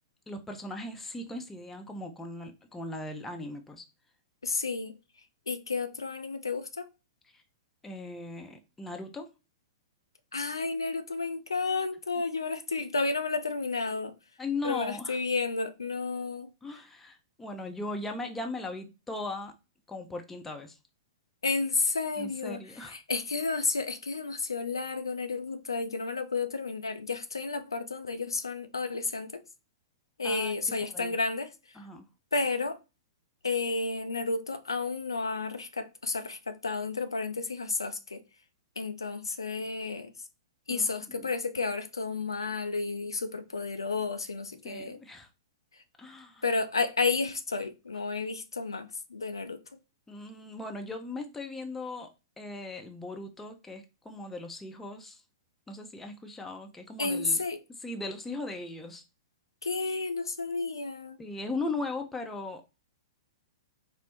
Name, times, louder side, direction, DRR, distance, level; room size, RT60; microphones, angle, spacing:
voice 1, 0.3-3.8 7.8-9.3 14.4-15.2 16.6-19.5 19.9-20.7 22.2-23.0 30.2-30.6 30.9-31.1 31.8-32.1 40.7-41.3 44.6-45.3 46.0-46.4 50.1-52.1 52.4-55.2 55.7-57.4 57.8-59.0 61.2-62.6, left 2 dB, 10° left, 0.6 m, -38 dB
voice 2, 4.4-5.0 5.5-6.9 10.3-14.1 14.6-16.5 21.4-29.4 30.2-31.5 32.3-32.8 33.4-38.2 38.8-40.1 40.7-45.0 46.4-49.6 57.0-57.6 59.6-61.2, left 4 dB, 75° left, 0.4 m, -31 dB
4.3 x 2.0 x 4.3 m
figure-of-eight pair, 105°, 2 cm